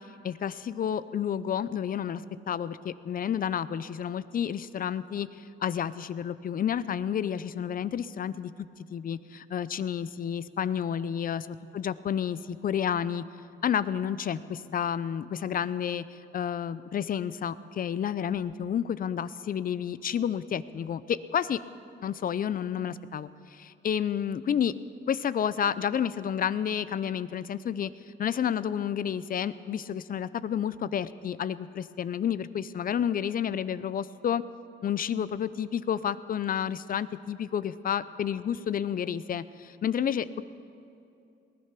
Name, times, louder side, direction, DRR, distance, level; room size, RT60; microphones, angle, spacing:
voice 1, 0.2-13.2 13.6-21.6 22.0-24.7 25.1-27.9 28.2-34.4 34.8-40.4, left 8 dB, 45° left, 16 dB, 0.5 m, -30 dB
19.0 x 11.0 x 6.0 m, 2.7 s
cardioid pair, 90°, 20 cm